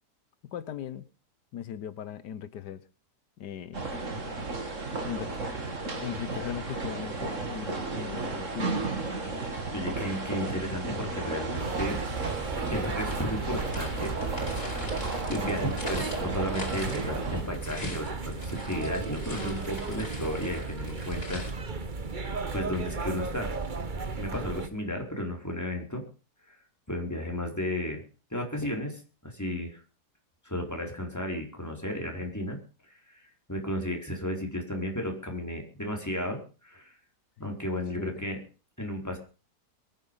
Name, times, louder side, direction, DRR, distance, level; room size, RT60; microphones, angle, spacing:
voice 1, 0.5-1.1 1.5-2.8 3.4-3.8 5.0-5.3 6.0-8.7 37.5-37.6 38.0-38.2, left 9 dB, 85° left, 14 dB, 1.5 m, -38 dB
sound 1, 3.7-17.4, right 3 dB, 50° right, 3.0 m, -34 dB
voice 2, 9.7-12.0 12.4-14.2 15.3-21.4 22.5-23.5 24.2-26.0 26.5-26.6 26.9-28.0 28.3-29.8 30.4-32.6 32.9-37.0 37.4-38.4 38.8-39.2, left 1 dB, 10° left, 2 dB, 4.4 m, -34 dB
sound 2, 11.6-24.7, right 4 dB, 30° right, 1.2 m, -35 dB
sound 3, 12.7-21.5, left 1 dB, 35° left, 5.1 m, -43 dB
23.0 x 10.0 x 5.5 m, 0.36 s
omnidirectional pair, 1.8 m